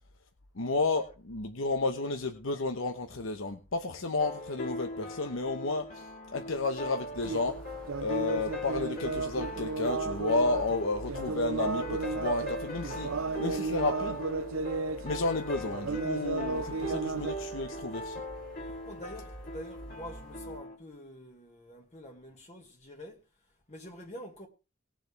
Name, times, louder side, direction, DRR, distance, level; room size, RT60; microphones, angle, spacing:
voice 1, 0.5-7.6 8.0-13.1 13.4-14.2 15.0-18.2, left 3 dB, 85° left, 1.2 m, -32 dB
sound 1, 4.2-20.8, equal, 50° left, 3.0 m, -40 dB
sound 2, 7.1-20.6, right 1 dB, 5° left, 1.3 m, -48 dB
sound 3, 7.2-7.6 7.9-10.8 11.1-15.2 15.4-17.3, right 4 dB, 90° right, 0.6 m, -34 dB
voice 2, 18.6-24.5, equal, 35° left, 1.8 m, -47 dB
20.5 x 7.6 x 3.3 m
head